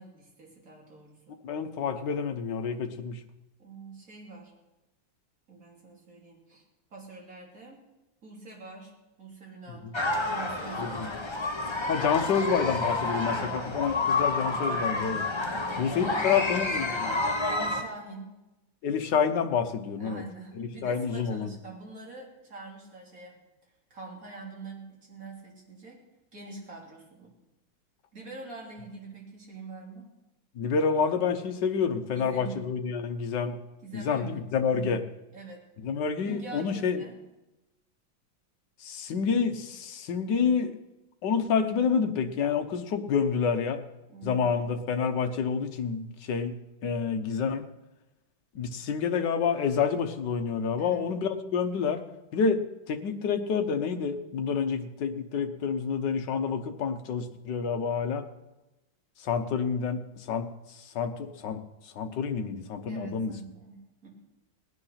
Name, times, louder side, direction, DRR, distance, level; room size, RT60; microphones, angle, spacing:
voice 1, 0.0-1.4 3.6-4.5 5.5-6.6 6.9-7.8 8.2-8.9 9.2-10.0 10.3-11.2 13.2-13.6 15.5-16.6 17.5-18.3 20.0-23.3 23.9-26.0 26.3-27.3 28.1-30.1 32.1-32.7 33.8-35.0 35.3-35.6 36.2-37.2 44.1-44.5 50.8-51.1 62.9-64.1, right 3 dB, 40° right, -2 dB, 3.6 m, -45 dB
voice 2, 1.4-3.2 10.8-11.1 11.9-15.2 15.8-17.1 18.8-20.2 20.6-21.5 30.6-33.6 33.9-35.0 35.8-37.0 38.8-40.7 41.2-43.8 44.2-46.5 46.8-47.6 48.5-52.0 52.3-52.6 52.9-58.3 59.2-60.0 60.3-60.5 60.9-61.6 61.9-63.3, left 6 dB, 65° left, 6 dB, 1.6 m, -28 dB
sound 1, 9.9-17.8, left 2 dB, 20° left, 0.7 m, -29 dB
19.5 x 9.6 x 5.8 m, 0.99 s
omnidirectional pair, 2.2 m